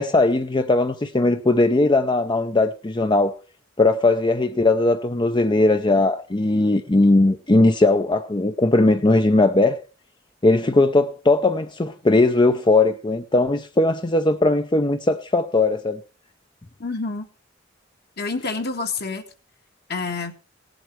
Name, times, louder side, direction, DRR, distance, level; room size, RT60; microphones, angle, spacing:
voice 1, 0.0-3.3 3.8-9.8 10.4-16.0, left 2 dB, 25° left, 0.6 m, -19 dB
voice 2, 16.8-17.3 18.2-19.2 19.9-20.3, left 4 dB, 55° left, 1.8 m, -27 dB
18.0 x 8.0 x 4.6 m
head